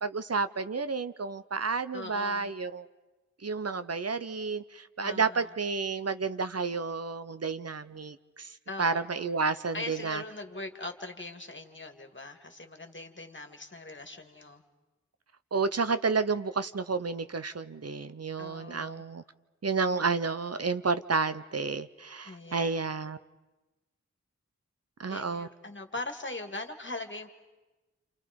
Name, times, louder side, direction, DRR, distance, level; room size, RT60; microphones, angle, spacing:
voice 1, 0.0-2.9 3.4-8.5 8.8-10.2 15.5-19.2 19.6-23.2 25.0-25.5, right 4 dB, 55° right, 12 dB, 0.8 m, -31 dB
voice 2, 1.9-2.5 5.0-5.5 8.7-14.6 18.4-19.0 22.2-22.9 25.1-27.3, left 2 dB, 40° left, 6 dB, 2.1 m, -41 dB
29.0 x 28.0 x 5.2 m, 1.1 s
wide cardioid pair, 55°, 29 cm